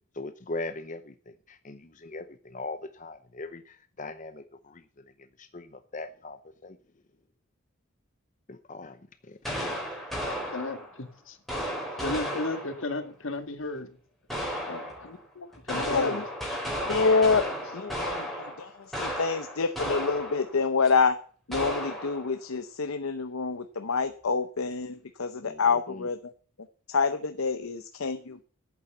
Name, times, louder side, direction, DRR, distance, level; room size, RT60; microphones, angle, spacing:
voice 1, 0.1-6.8 8.5-9.8 25.4-26.1, left 2 dB, 35° left, 10 dB, 0.7 m, -41 dB
sound 1, 9.4-11.0 11.5-12.9 14.3-15.1 15.5-20.6 20.9-21.0 21.5-22.3, equal, ahead, 4.1 m, -34 dB
voice 2, 10.3-11.1 12.0-14.0 14.3-15.3 15.6-16.2, left 2 dB, 70° left, 7 dB, 2.0 m, -35 dB
voice 3, 15.1-15.5 15.8-16.3 16.8-21.2 21.5-26.3 26.9-28.4, left 4 dB, 90° left, 8 dB, 0.8 m, -27 dB
11.0 x 8.7 x 7.8 m, 0.43 s
head